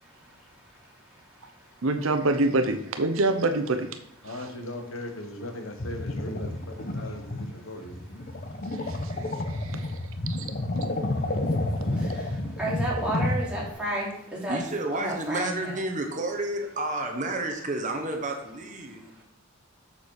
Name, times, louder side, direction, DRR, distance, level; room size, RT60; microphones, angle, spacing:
voice 1, 1.8-3.9 8.8-9.9 10.4-10.5, right 2 dB, 80° right, 0.8 m, -26 dB
voice 2, 4.2-8.0, left 1 dB, 75° left, 1.2 m, -38 dB
sound 1, 5.8-13.7, left 1 dB, 45° left, 0.8 m, -30 dB
voice 3, 12.6-14.6 14.9-15.8, right 1 dB, 5° right, 3.1 m, -31 dB
voice 4, 14.5-19.2, right 2 dB, 35° right, 1.0 m, -31 dB
6.9 x 6.9 x 4.7 m
head